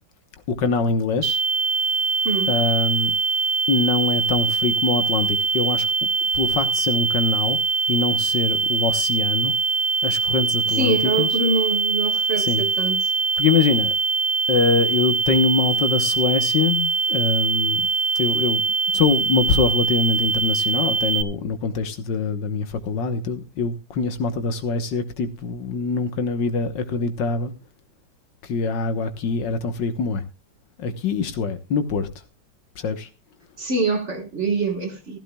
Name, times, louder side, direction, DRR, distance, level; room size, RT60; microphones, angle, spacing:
voice 1, 0.5-1.4 2.5-3.2 3.7-5.9 6.3-7.6 7.9-9.6 10.0-11.3 12.4-12.6 13.4-13.9 14.5-17.9 18.2-18.6 18.9-27.5 28.4-30.2 30.8-32.1 32.8-33.1, left 4 dB, 70° left, 1.8 m, -23 dB
sound 1, 1.2-21.2, right 4 dB, 90° right, 1.6 m, -22 dB
voice 2, 2.2-2.6 10.7-13.1 33.6-35.2, right 3 dB, 40° right, 1.7 m, -25 dB
15.0 x 14.5 x 2.3 m
omnidirectional pair, 2.0 m